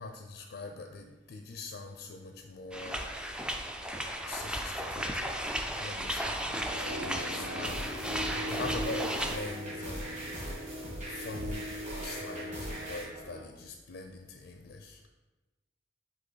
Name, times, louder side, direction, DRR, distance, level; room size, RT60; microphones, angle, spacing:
voice 1, 0.0-3.6 4.2-5.4 5.8-10.8 11.1-11.7 12.0-15.1, left 3 dB, 65° left, 4 dB, 0.4 m, -43 dB
sound 1, 2.7-9.4, right 1 dB, 5° right, 0.3 m, -35 dB
sound 2, 6.7-13.4, equal, 55° right, 1.1 m, -40 dB
sound 3, 7.6-13.0, equal, 40° right, 1.9 m, -41 dB
6.2 x 3.0 x 5.5 m, 1.2 s
head